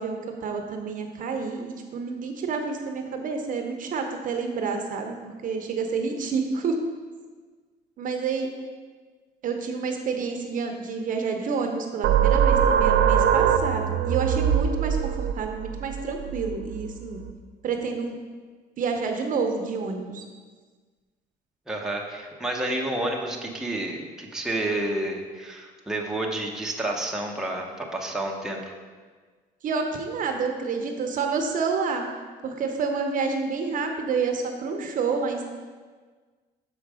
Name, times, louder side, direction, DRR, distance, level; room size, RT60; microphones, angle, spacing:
voice 1, 0.0-5.2 5.4-6.8 8.0-8.5 9.4-15.0 15.3-17.2 17.6-18.2 18.8-20.2 29.6-32.0 32.4-35.4, right 5 dB, 50° right, 4 dB, 0.8 m, -28 dB
sound 1, 12.0-17.3, right 9 dB, 80° right, 0.4 m, -22 dB
voice 2, 21.7-28.7, right 1 dB, 5° right, -1 dB, 0.9 m, -30 dB
6.4 x 4.8 x 4.8 m, 1.5 s
cardioid pair, 110°, 17 cm